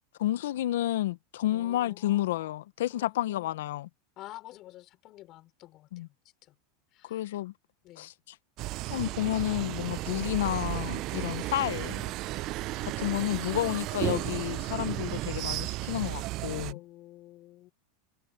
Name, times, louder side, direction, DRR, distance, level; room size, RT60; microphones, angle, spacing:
voice 1, 0.2-3.9 5.9-6.1 7.0-7.5 8.0-8.1 8.9-12.1 12.8-16.8, left 14 dB, 80° left, 0.8 m, -31 dB
voice 2, 1.5-2.3 2.9-3.5 4.2-6.1 6.4-6.6 6.9-7.3 7.8-8.1 10.2-10.4 11.2-11.5 12.4-12.9 16.7-17.7, left 16 dB, 45° left, 5.6 m, -50 dB
sound 1, 8.6-16.7, right 18 dB, 50° right, 0.4 m, -34 dB
supercardioid pair, 115°, 0 cm